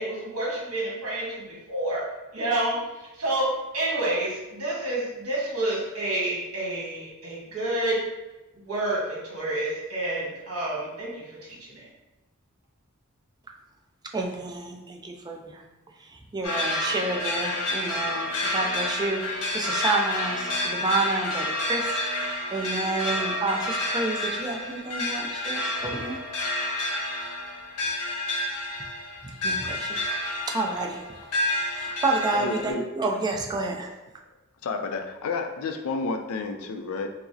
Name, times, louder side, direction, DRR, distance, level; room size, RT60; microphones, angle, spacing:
voice 1, 0.0-2.1 2.3-2.8 3.2-8.0 8.5-11.2 11.5-11.9, right 1 dB, 70° right, -5 dB, 1.5 m, -29 dB
voice 2, 14.1-15.6 16.1-21.9 22.5-26.2 29.4-30.2 30.5-31.0 31.4-33.9, right 2 dB, 20° right, 1 dB, 0.4 m, -29 dB
sound 1, 16.4-32.7, left 1 dB, 85° left, 0.9 m, -29 dB
voice 3, 32.3-32.8 34.6-37.1, left 4 dB, 65° left, 5 dB, 0.4 m, -31 dB
4.7 x 2.0 x 2.6 m, 1.1 s
head